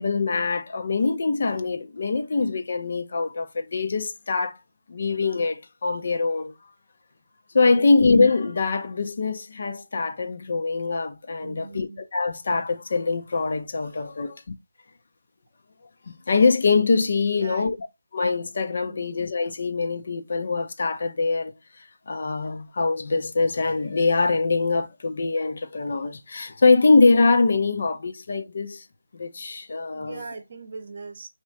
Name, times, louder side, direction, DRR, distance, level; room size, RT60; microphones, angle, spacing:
voice 1, 0.0-4.6 4.9-6.5 7.5-14.4 16.1-17.8 18.1-28.8 29.1-30.2, left 4 dB, 45° left, 0.7 m, -23 dB
voice 2, 11.4-12.0 13.7-13.9 17.3-17.7 18.8-19.0 29.9-31.3, right 4 dB, 40° right, 0.8 m, -40 dB
3.1 x 2.9 x 4.5 m
figure-of-eight pair, 165°, 0 cm